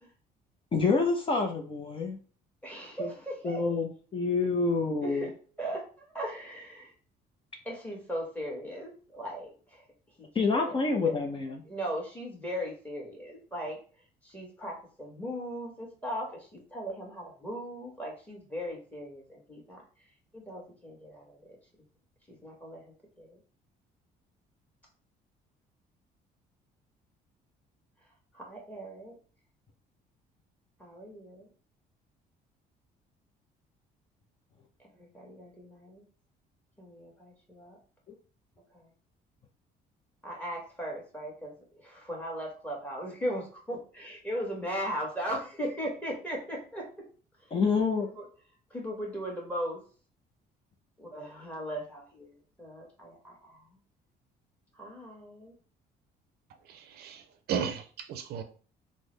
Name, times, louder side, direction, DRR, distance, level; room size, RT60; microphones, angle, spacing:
voice 1, 0.7-2.2 3.0-3.1 3.4-5.3 10.3-11.6 47.5-48.1, left 4 dB, 30° left, 0.6 m, -27 dB
voice 2, 2.6-3.6 5.0-5.3 5.6-6.9 7.6-9.8 10.2-13.8 14.2-19.8 20.3-21.5 22.3-23.4 28.3-29.1 30.8-31.5 35.0-36.0 36.8-37.8 38.7-38.9 40.2-41.5 41.8-46.9 47.6-48.3 48.7-49.8 51.0-53.6 54.7-55.5, equal, 10° left, 1.4 m, -38 dB
voice 3, 56.7-57.2 57.5-58.4, right 7 dB, 70° right, 0.5 m, -34 dB
3.7 x 2.0 x 3.2 m
cardioid pair, 110°, 17 cm